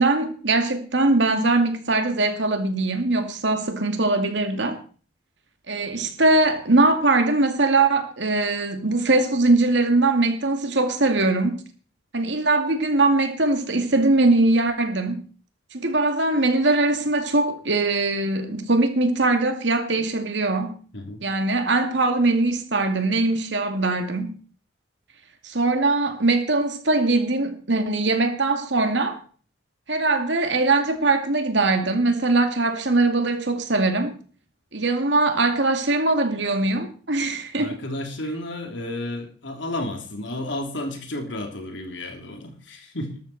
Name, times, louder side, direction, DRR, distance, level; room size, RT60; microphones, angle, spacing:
voice 1, 0.0-4.8 5.7-11.6 12.1-15.2 15.7-20.8 21.2-24.4 25.4-29.2 29.9-34.2 34.7-37.8, right 2 dB, 75° right, 2.4 m, -21 dB
voice 2, 37.6-43.2, left 1 dB, 80° left, 3.2 m, -32 dB
13.5 x 13.0 x 4.3 m
head